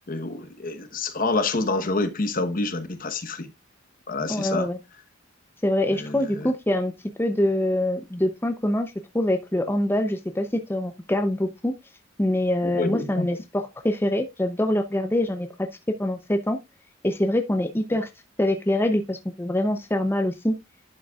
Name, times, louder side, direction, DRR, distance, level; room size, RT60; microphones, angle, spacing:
voice 1, 0.1-3.5 4.1-4.7 5.8-6.5 12.6-13.3 17.9-18.0, left 3 dB, 45° left, 1.0 m, -28 dB
voice 2, 4.3-4.8 5.6-6.9 7.2-11.7 12.2-15.5 16.0-16.6 17.0-18.1 18.4-20.5, left 1 dB, 10° left, 0.5 m, -24 dB
11.5 x 6.0 x 2.3 m
head